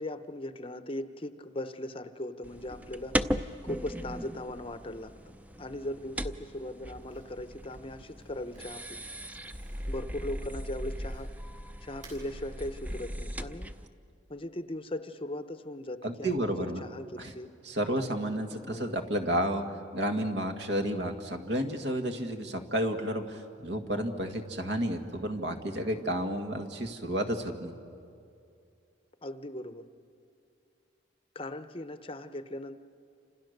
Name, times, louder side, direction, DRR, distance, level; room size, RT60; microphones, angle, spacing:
voice 1, 0.0-9.0 9.9-11.3 11.8-13.7 14.3-17.5 18.5-18.8 29.2-29.9 31.3-32.8, left 1 dB, 30° left, 10 dB, 0.8 m, -39 dB
sound 1, 2.4-13.9, equal, 10° right, 0.6 m, -38 dB
Crumpling crinkling, 7.0-11.5 11.9-12.3, right 3 dB, 40° right, 7.3 m, -58 dB
voice 2, 16.0-16.8 17.2-17.3 17.6-27.7, right 1 dB, 65° right, 5 dB, 1.9 m, -31 dB
29.5 x 27.0 x 6.7 m, 2.5 s
head